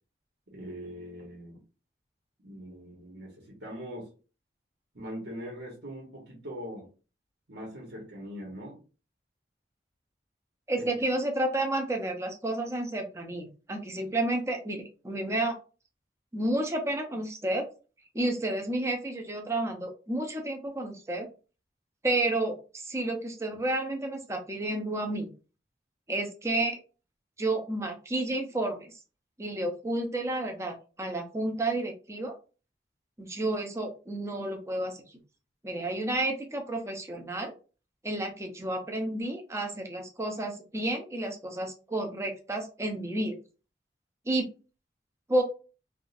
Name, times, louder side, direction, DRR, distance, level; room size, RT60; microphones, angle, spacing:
voice 1, 0.5-1.6 2.4-4.1 4.9-6.9 7.5-8.8 10.7-10.8, equal, 90° right, -2 dB, 1.3 m, -41 dB
voice 2, 10.7-15.5 16.3-17.7 18.1-21.3 22.0-25.3 26.1-26.8 27.4-28.9 29.4-32.3 33.2-35.0 35.6-37.5 38.0-43.4 44.3-44.5 45.3-45.4, right 1 dB, 15° right, 3 dB, 0.6 m, -31 dB
3.6 x 2.4 x 2.6 m, 0.34 s
head